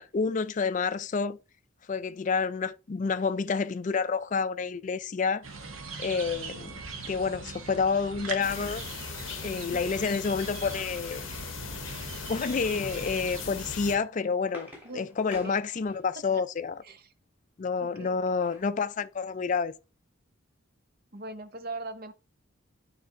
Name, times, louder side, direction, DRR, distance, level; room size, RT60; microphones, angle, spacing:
voice 1, 0.0-1.4 1.9-5.5 6.0-6.7 7.1-8.8 9.4-11.2 12.3-14.7 14.9-16.8 17.6-19.7, left 5 dB, 35° left, 0.4 m, -29 dB
sound 1, 5.4-14.0, right 4 dB, 80° right, 1.2 m, -41 dB
voice 2, 6.3-6.8 9.6-9.9 14.8-15.1 15.4-15.6 16.3-16.4 16.8-17.1 17.8-18.2 21.1-22.1, right 2 dB, 45° right, 0.7 m, -41 dB
sound 2, 8.4-14.0, left 7 dB, 65° left, 0.7 m, -40 dB
sound 3, 14.4-16.3 17.9-18.7 19.2-19.3 19.6-19.8, left 2 dB, 10° right, 2.6 m, -48 dB
9.2 x 3.3 x 3.8 m
head